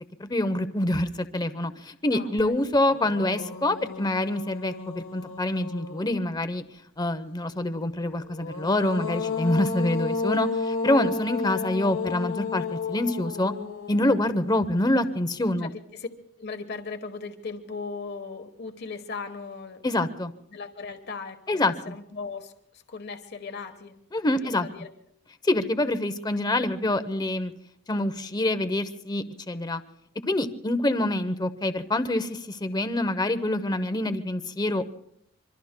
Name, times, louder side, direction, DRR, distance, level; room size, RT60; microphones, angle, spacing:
voice 1, 0.2-6.6 7.0-13.5 13.9-15.7 19.8-20.3 21.5-22.0 24.1-24.7 25.4-27.5 27.9-29.8 30.3-34.9, left 1 dB, 20° left, 11 dB, 0.7 m, -26 dB
voice 2, 2.1-2.6 15.9-16.1 16.4-19.8 20.5-23.9 24.3-24.9, left 4 dB, 55° left, 7 dB, 1.2 m, -38 dB
sound 1, 2.4-2.5 2.9-6.5 8.2-15.5, left 4 dB, 75° left, 1.4 m, -33 dB
26.0 x 24.0 x 2.2 m, 0.74 s
head